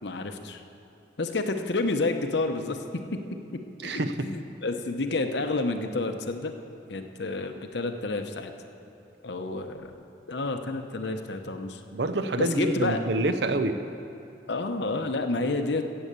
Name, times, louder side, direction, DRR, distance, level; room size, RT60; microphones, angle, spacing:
voice 1, 0.0-0.6 1.2-3.2 3.8-6.5 6.9-8.5 9.2-11.8 12.4-13.0 14.5-15.8, left 3 dB, 70° left, 6 dB, 0.9 m, -30 dB
voice 2, 3.8-4.3 11.9-13.8, right 2 dB, 65° right, 9 dB, 0.7 m, -27 dB
16.0 x 7.8 x 6.9 m, 2.8 s
head